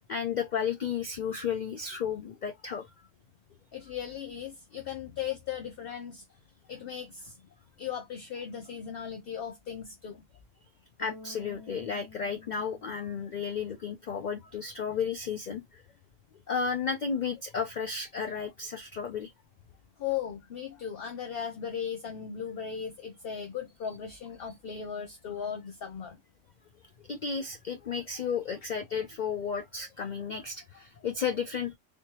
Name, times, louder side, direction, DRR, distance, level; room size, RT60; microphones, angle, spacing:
voice 1, 0.1-2.9 11.0-15.8 16.5-19.3 27.0-31.8, left 6 dB, 85° left, 0.4 m, -33 dB
voice 2, 3.7-6.2 6.7-7.4 7.8-10.2 20.0-26.2, left 8 dB, 55° left, 0.8 m, -37 dB
Bass guitar, 11.0-14.1, left 3 dB, 25° left, 1.4 m, -51 dB
3.4 x 3.1 x 2.8 m
omnidirectional pair, 1.3 m